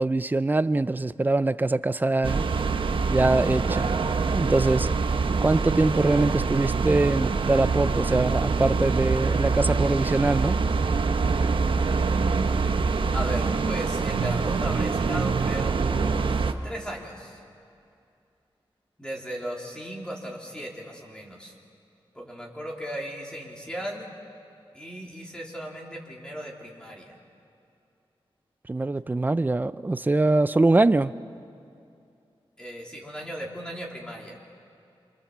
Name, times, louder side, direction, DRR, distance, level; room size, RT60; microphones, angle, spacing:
voice 1, 0.0-2.5 3.1-3.9 4.3-4.9 5.4-10.6 28.7-31.1, right 2 dB, 20° right, 14 dB, 0.5 m, -23 dB
sound 1, 2.2-16.5, right 4 dB, 65° right, 1.1 m, -25 dB
voice 2, 13.1-17.4 19.0-21.5 22.1-24.1 24.7-27.2 32.6-34.4, equal, 10° left, -2 dB, 3.3 m, -36 dB
28.0 x 26.0 x 7.3 m, 2.5 s
wide cardioid pair, 130°, 9 cm